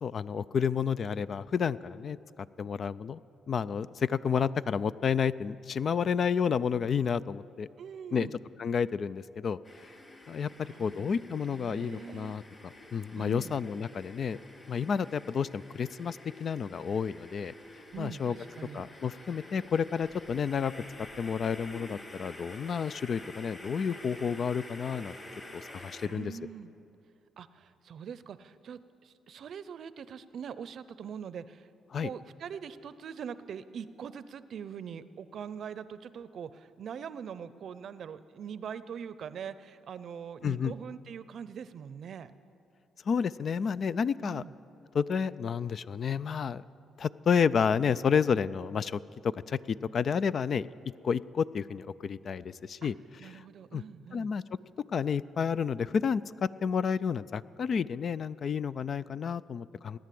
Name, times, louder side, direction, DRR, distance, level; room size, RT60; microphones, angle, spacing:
voice 1, 0.0-3.2 3.5-7.7 8.1-8.3 8.6-9.6 10.3-14.4 14.7-17.5 18.0-18.4 18.7-20.7 21.2-25.2 25.5-26.3 31.9-32.1 40.4-40.7 43.1-44.4 44.9-46.6 47.0-50.7 51.0-52.9 53.2-53.5 53.7-53.8 54.1-54.4 54.9-60.0, left 6 dB, 50° left, 17 dB, 0.3 m, -30 dB
voice 2, 7.8-8.3 10.5-12.4 13.2-13.5 17.9-18.8 26.0-26.7 27.4-31.7 32.0-42.3 44.2-44.5 52.8-52.9 53.2-54.3, right 7 dB, 60° right, 14 dB, 0.6 m, -43 dB
sound 1, 9.6-26.1, left 1 dB, 30° left, 2.6 m, -49 dB
18.0 x 10.5 x 7.6 m, 2.7 s
cardioid pair, 90°, 0 cm